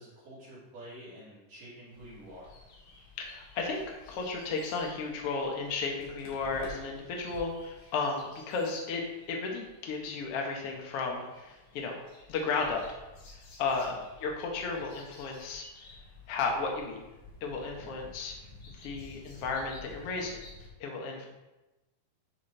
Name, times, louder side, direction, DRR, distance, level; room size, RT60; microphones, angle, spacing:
voice 1, 0.0-2.5 13.8-14.0 14.6-14.8 17.8-18.0 21.2-21.3, equal, 65° right, -10 dB, 4.0 m, -49 dB
sound 1, 1.9-20.7, left 3 dB, 60° left, 2.9 m, -52 dB
voice 2, 3.2-12.0 12.3-13.0 13.3-15.6 16.3-17.0 17.4-18.3 18.7-20.4 20.8-21.3, left 4 dB, 75° left, 0 dB, 1.3 m, -34 dB
10.5 x 4.2 x 3.3 m, 1.0 s
omnidirectional pair, 4.2 m